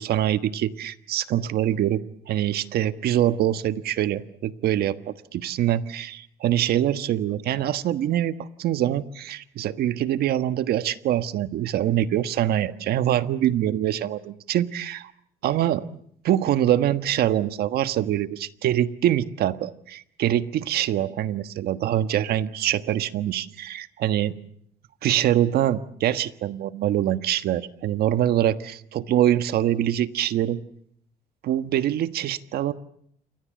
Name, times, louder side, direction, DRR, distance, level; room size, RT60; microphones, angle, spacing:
voice 1, 0.0-15.1 15.4-15.9 16.2-24.4 25.0-30.6 31.4-32.7, right 12 dB, 65° right, 11 dB, 1.4 m, -24 dB
28.5 x 24.0 x 7.6 m, 0.68 s
cardioid pair, 110°, 17 cm